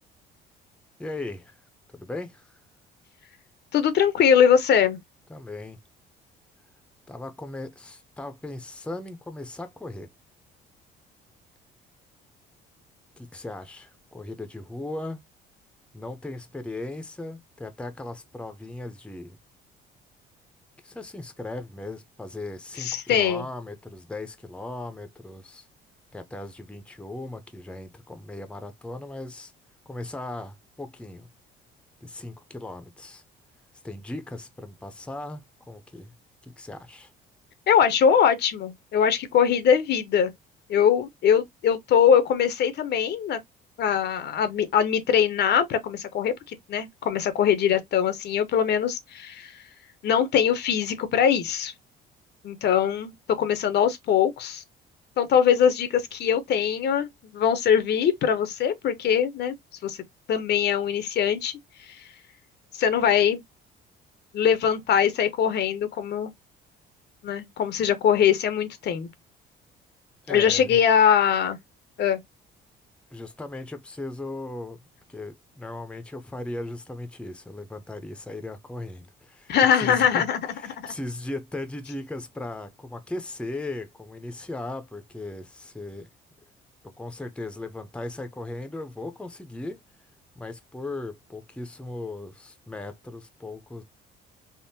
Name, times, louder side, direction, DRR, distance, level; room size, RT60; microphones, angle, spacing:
voice 1, 1.0-1.5 1.9-2.6 5.3-5.8 7.1-10.1 13.2-15.2 15.9-19.4 20.8-25.7 26.1-29.5 29.9-31.3 32.0-33.2 33.8-36.1 36.4-37.1 70.2-70.8 73.1-74.8 75.1-79.5 79.8-80.2 80.6-86.1 87.0-89.8 90.4-93.8, left 2 dB, 5° left, 0.6 m, -37 dB
voice 2, 3.7-5.0 22.8-23.4 37.7-40.3 40.7-43.4 43.8-49.6 50.0-51.7 52.4-54.6 55.2-59.5 59.8-60.0 60.3-62.1 62.7-63.4 64.3-66.3 67.2-69.1 70.3-71.6 72.0-72.2 79.5-80.9, left 8 dB, 60° left, 0.6 m, -22 dB
3.5 x 2.0 x 2.7 m
cardioid pair, 90°, 20 cm